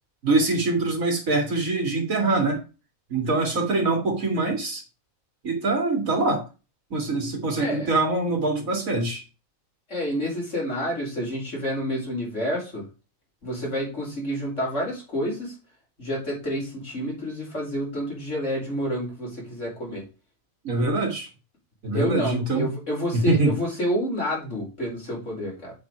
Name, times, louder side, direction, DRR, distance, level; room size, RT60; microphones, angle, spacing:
voice 1, 0.2-2.6 3.1-4.8 5.4-6.4 6.9-9.2 20.6-21.3 21.8-22.7 23.1-23.5, right 2 dB, 80° right, 2 dB, 2.8 m, -24 dB
voice 2, 7.6-7.9 9.9-12.9 13.4-15.5 16.0-20.0 21.9-25.7, equal, 60° left, -3 dB, 5.2 m, -29 dB
8.3 x 5.3 x 4.7 m, 0.31 s
omnidirectional pair, 1.4 m